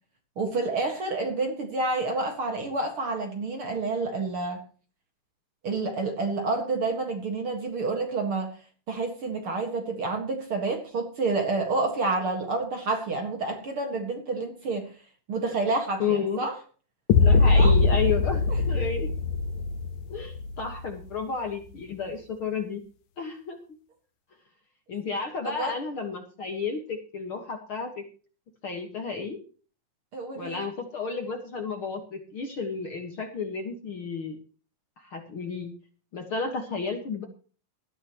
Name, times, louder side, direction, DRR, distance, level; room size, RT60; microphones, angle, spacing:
voice 1, 0.4-4.6 5.6-8.5 8.9-14.9 15.3-16.5 17.6-17.7 25.4-25.7 30.1-30.6, right 3 dB, 45° right, 4 dB, 2.3 m, -29 dB
voice 2, 16.0-16.5 17.2-19.1 20.1-22.8 23.2-23.6 24.9-28.0 28.6-29.4 30.4-34.4 35.0-35.7 36.1-37.2, left 5 dB, 45° left, 4 dB, 2.0 m, -32 dB
sound 1, 17.1-21.1, left 4 dB, 75° left, 2.5 m, -22 dB
18.0 x 13.5 x 3.1 m, 0.39 s
omnidirectional pair, 3.9 m